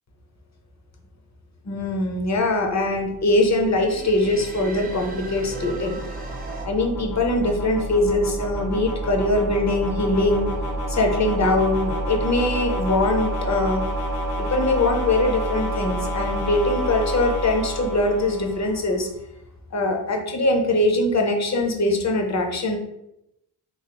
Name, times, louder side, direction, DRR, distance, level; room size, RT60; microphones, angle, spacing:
voice 1, 1.6-6.0 6.6-10.5 10.9-13.9 14.4-19.1 19.7-22.8, left 2 dB, 40° left, 3 dB, 0.7 m, -22 dB
sound 1, 2.8-19.0, right 1 dB, 80° left, 1.2 m, -29 dB
sound 2, 3.7-6.7, right 3 dB, 20° right, 0.5 m, -37 dB
3.1 x 2.7 x 2.9 m, 0.83 s
cardioid pair, 85°, 41 cm